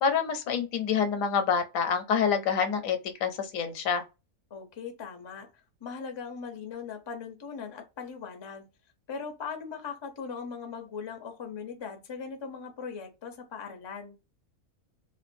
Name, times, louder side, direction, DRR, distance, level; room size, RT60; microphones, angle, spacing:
voice 1, 0.0-4.0, left 6 dB, 80° left, 1.1 m, -27 dB
voice 2, 4.5-8.7 9.1-14.2, left 5 dB, 40° left, 0.3 m, -39 dB
3.0 x 2.2 x 2.5 m
omnidirectional pair, 1.4 m